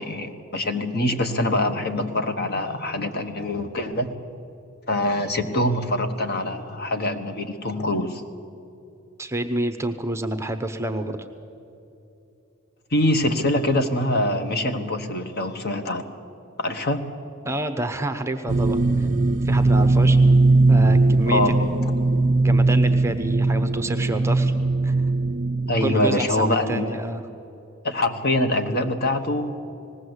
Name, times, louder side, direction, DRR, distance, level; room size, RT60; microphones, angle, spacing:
voice 1, 0.0-4.1 4.9-8.2 12.9-16.0 16.6-17.0 21.3-21.9 25.7-27.0 27.8-29.6, left 1 dB, 45° left, 7 dB, 1.2 m, -24 dB
voice 2, 9.2-11.2 17.4-19.1 19.4-20.2 20.7-21.4 22.4-24.5 24.8-25.0 25.8-27.2, right 1 dB, 10° right, 7 dB, 0.8 m, -28 dB
sound 1, 18.5-26.0, right 3 dB, 35° right, 0.4 m, -19 dB
20.0 x 16.5 x 8.0 m, 2.8 s
head